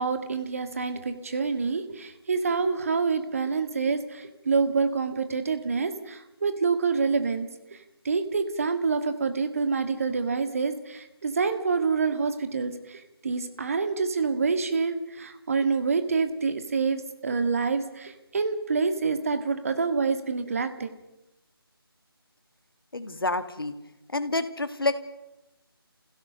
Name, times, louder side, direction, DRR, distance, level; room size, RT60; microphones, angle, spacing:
voice 1, 0.0-7.8 8.0-20.9, right 4 dB, 35° right, 9 dB, 1.8 m, -27 dB
voice 2, 22.9-23.7 24.1-25.0, left 2 dB, 65° left, 10 dB, 2.1 m, -28 dB
29.0 x 16.0 x 6.9 m, 0.95 s
figure-of-eight pair, 160°, 13 cm